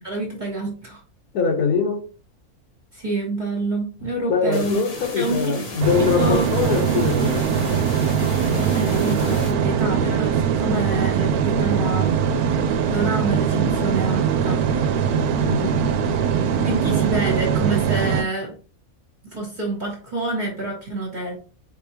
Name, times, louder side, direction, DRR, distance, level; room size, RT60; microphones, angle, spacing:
voice 1, 0.0-1.0 2.9-4.8 5.1-5.6 6.0-6.5 8.5-12.2 12.9-14.7 16.6-18.5 19.2-21.4, right 2 dB, 35° right, -1 dB, 1.1 m, -27 dB
voice 2, 1.3-2.0 4.3-7.5 15.4-15.7, left 5 dB, 75° left, 5 dB, 1.5 m, -22 dB
sound 1, 4.5-9.5, left 2 dB, 45° left, 1.2 m, -36 dB
sound 2, 5.8-18.2, right 7 dB, 80° right, 1.1 m, -21 dB
4.6 x 3.5 x 2.9 m, 0.38 s
omnidirectional pair, 1.6 m